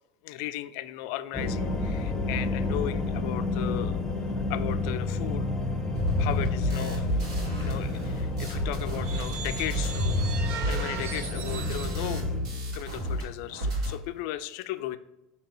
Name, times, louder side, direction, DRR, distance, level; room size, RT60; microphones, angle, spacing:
voice 1, 0.2-4.0 4.5-5.5 6.2-7.1 7.6-10.3 10.6-12.2 12.7-15.0, left 14 dB, 65° left, 12 dB, 0.4 m, -36 dB
sound 1, 1.3-12.4, left 3 dB, 15° left, 0.7 m, -31 dB
sound 2, 6.0-13.2 13.5-14.0, equal, 85° right, 1.5 m, -30 dB
sound 3, 8.9-12.1, right 7 dB, 70° right, 0.6 m, -39 dB
6.0 x 2.9 x 3.0 m, 0.94 s
supercardioid pair, 115°, 3 cm